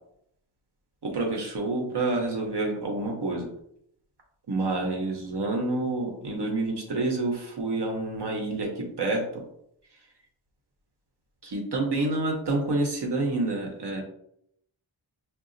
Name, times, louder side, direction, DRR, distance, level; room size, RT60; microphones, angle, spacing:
voice 1, 1.0-3.5 4.5-9.4 11.4-14.0, right 2 dB, 55° right, 0 dB, 0.8 m, -28 dB
4.8 x 2.3 x 2.5 m, 0.73 s
wide cardioid pair, 120°, 49 cm